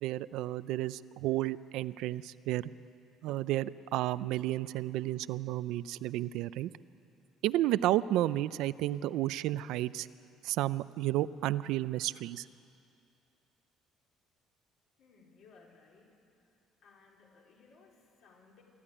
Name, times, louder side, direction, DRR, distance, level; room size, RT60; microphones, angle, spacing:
voice 1, 0.0-2.7 3.2-6.7 7.4-10.1 10.4-12.4, right 15 dB, 75° right, 16 dB, 0.4 m, -32 dB
voice 2, 15.0-16.2 16.4-18.6, left 4 dB, 60° left, -2 dB, 4.3 m, -61 dB
24.0 x 13.5 x 9.9 m, 2.5 s
cardioid pair, 165°, 0 cm